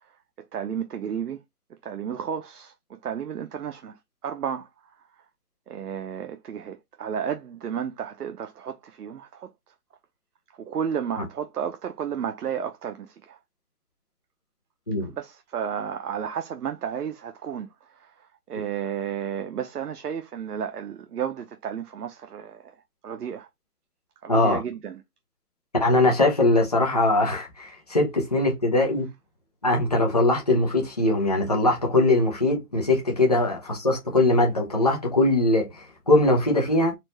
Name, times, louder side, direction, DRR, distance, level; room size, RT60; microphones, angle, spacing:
voice 1, 0.4-1.4 1.8-4.0 4.2-4.7 5.7-9.5 10.6-13.4 15.0-18.1 18.5-22.7 23.0-23.5 24.2-25.0, right 8 dB, 75° right, 0.8 m, -32 dB
voice 2, 24.3-24.6 25.8-29.1 29.6-36.9, left 2 dB, 25° left, 0.8 m, -21 dB
4.3 x 2.6 x 3.0 m
hypercardioid pair, 180°, 46 cm